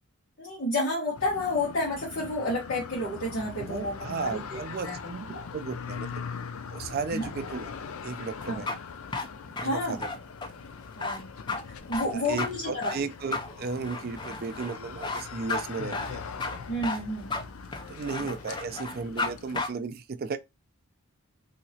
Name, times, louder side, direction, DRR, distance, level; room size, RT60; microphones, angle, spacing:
voice 1, 0.4-4.6 4.8-5.0 5.3-5.4 7.1-7.3 8.5-8.6 9.6-10.0 11.0-11.3 11.6-13.0 16.7-17.4, left 1 dB, 50° left, 1.2 m, -30 dB
sound 1, 1.1-19.6, left 5 dB, 75° left, 0.4 m, -41 dB
voice 2, 3.6-6.2 6.7-7.7 8.0-8.7 9.6-10.1 12.0-16.2 17.9-20.4, right 4 dB, 45° right, 0.4 m, -35 dB
sound 2, 8.4-19.3 19.5-19.7, left 3 dB, 20° left, 0.4 m, -33 dB
2.9 x 2.8 x 2.7 m
head